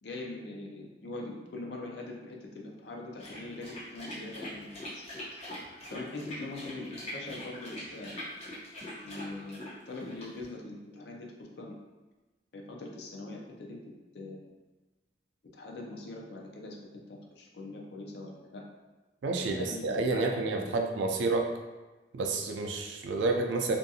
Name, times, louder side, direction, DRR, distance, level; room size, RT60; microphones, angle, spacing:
voice 1, 0.0-5.0 5.9-8.1 9.0-11.8 12.5-13.8 14.1-14.5 15.5-18.6 19.4-20.9, left 2 dB, 65° left, 0 dB, 0.5 m, -42 dB
sound 1, 3.2-10.5, left 1 dB, 35° left, 0.8 m, -42 dB
voice 2, 19.2-21.5 22.1-23.8, right 3 dB, 80° right, 3 dB, 0.4 m, -29 dB
2.6 x 2.3 x 2.7 m, 1.2 s
head